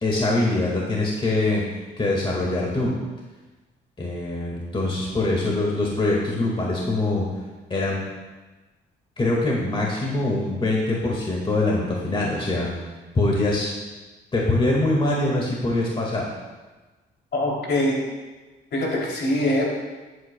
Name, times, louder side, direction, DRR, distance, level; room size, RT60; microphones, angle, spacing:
voice 1, 0.0-1.6 2.0-2.9 4.0-7.2 7.7-8.0 9.2-12.7 13.1-13.7 14.3-16.3, left 2 dB, 25° left, -3 dB, 1.8 m, -23 dB
voice 2, 17.3-18.0 18.7-19.7, left 1 dB, 60° left, -2 dB, 2.9 m, -23 dB
13.5 x 8.3 x 2.2 m, 1.2 s
cardioid pair, 90°, 20 cm